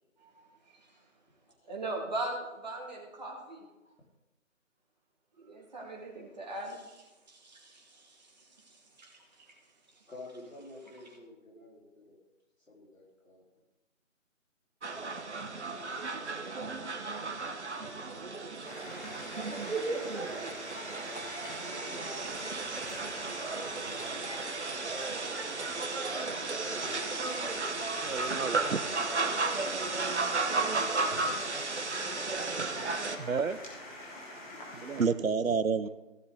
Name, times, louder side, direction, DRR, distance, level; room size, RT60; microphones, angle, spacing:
voice 1, 1.7-3.7 5.4-9.5, right 2 dB, 30° right, -1 dB, 2.2 m, -40 dB
voice 2, 10.1-12.2 12.7-13.4 15.6-16.9 19.9-20.5 20.9-21.3 21.6-22.4 26.2-28.0 30.4-33.1 34.7-34.8, left 1 dB, 80° left, -3 dB, 4.0 m, -51 dB
sound 1, 14.8-33.2, right 3 dB, 55° right, 1.1 m, -34 dB
sound 2, 18.6-35.1, left 1 dB, 40° left, 3.1 m, -46 dB
voice 3, 28.0-28.8 33.2-33.6 34.9-35.9, right 5 dB, 80° right, 14 dB, 0.8 m, -29 dB
15.5 x 6.9 x 3.9 m, 1.1 s
figure-of-eight pair, 160°, 40 cm